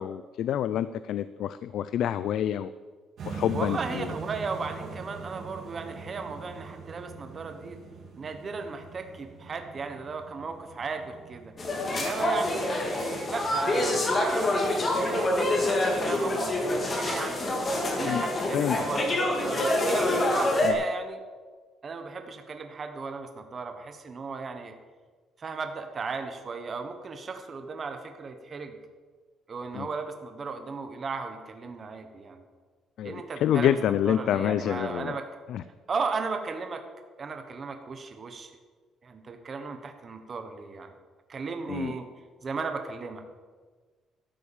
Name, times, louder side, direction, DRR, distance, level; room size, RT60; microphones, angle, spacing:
voice 1, 0.0-2.7 3.2-4.1 18.0-18.2 18.5-18.8 20.6-20.8 29.7-29.9 33.0-35.1 35.5-35.6 41.7-41.9, left 10 dB, 65° left, 14 dB, 0.4 m, -27 dB
sound 1, 3.2-17.2, right 5 dB, 50° right, 3.1 m, -44 dB
voice 2, 3.5-7.8 8.2-11.5 11.9-14.6 15.0-16.5 16.9-17.5 18.0-21.2 21.8-24.7 25.4-28.8 29.5-32.4 33.0-33.8 34.0-35.2 35.9-36.8 37.2-38.5 39.0-40.9 41.3-42.1 42.4-43.2, right 4 dB, 30° right, 6 dB, 1.2 m, -35 dB
sound 2, 11.6-20.7, left 1 dB, 25° left, 2.4 m, -26 dB
13.0 x 9.4 x 7.2 m, 1.4 s
cardioid pair, 160°, 0 cm